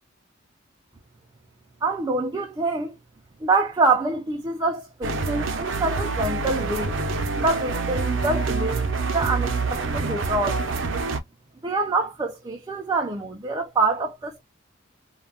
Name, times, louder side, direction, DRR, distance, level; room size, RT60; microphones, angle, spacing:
voice 1, 1.8-3.0 3.4-6.9 7.4-10.6 11.6-14.4, right 3 dB, 20° right, 0.4 m, -25 dB
sound 1, 5.0-11.2, right 4 dB, 70° right, 0.5 m, -26 dB
2.3 x 2.2 x 3.5 m
head